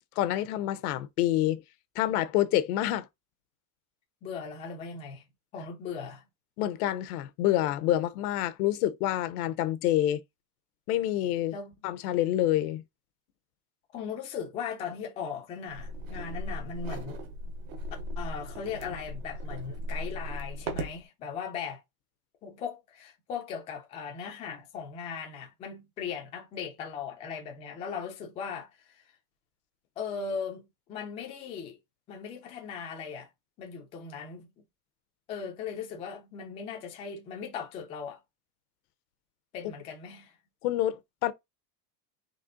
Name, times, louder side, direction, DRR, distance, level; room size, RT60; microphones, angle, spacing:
voice 1, 0.2-1.6 2.0-3.1 6.6-10.2 10.9-11.5 11.8-12.8 40.6-41.3, left 13 dB, 70° left, 0.8 m, -27 dB
voice 2, 4.2-5.2 5.5-6.2 11.5-11.7 13.9-17.2 18.2-21.8 22.4-29.1 30.0-31.8 32.1-33.3 33.6-34.5 35.3-38.2 39.5-40.4, left 6 dB, 15° left, 0.4 m, -38 dB
sound 1, 15.7-21.0, equal, 60° right, 1.2 m, -37 dB
4.3 x 3.0 x 3.7 m
supercardioid pair, 175°, 46 cm